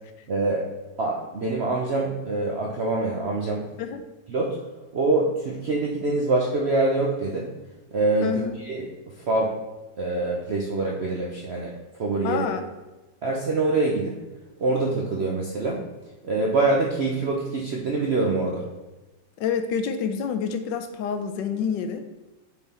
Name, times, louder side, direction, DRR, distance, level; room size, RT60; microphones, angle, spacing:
voice 1, 0.3-0.6 1.0-3.7 4.3-4.6 4.9-7.5 7.9-8.3 8.6-9.6 10.0-11.7 12.0-12.5 13.2-14.2 14.6-15.8 16.2-18.6, right 2 dB, 65° right, -1 dB, 0.6 m, -25 dB
voice 2, 8.2-8.5 12.2-12.6 19.4-22.0, left 7 dB, 80° left, 7 dB, 1.2 m, -27 dB
6.9 x 4.1 x 4.2 m, 1.1 s
omnidirectional pair, 2.0 m